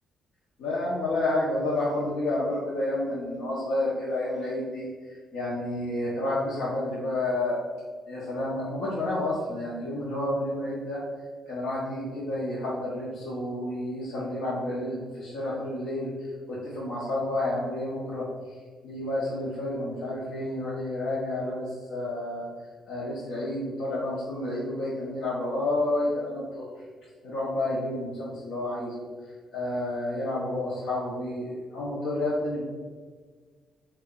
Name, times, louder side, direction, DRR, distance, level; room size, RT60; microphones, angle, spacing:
voice 1, 0.6-4.9 5.3-7.6 8.1-11.0 11.5-18.3 18.8-22.4 22.9-26.7 27.2-29.0 29.5-32.6, left 1 dB, 80° left, -8 dB, 0.8 m, -30 dB
3.5 x 2.2 x 3.6 m, 1.5 s
cardioid pair, 90°, 0 cm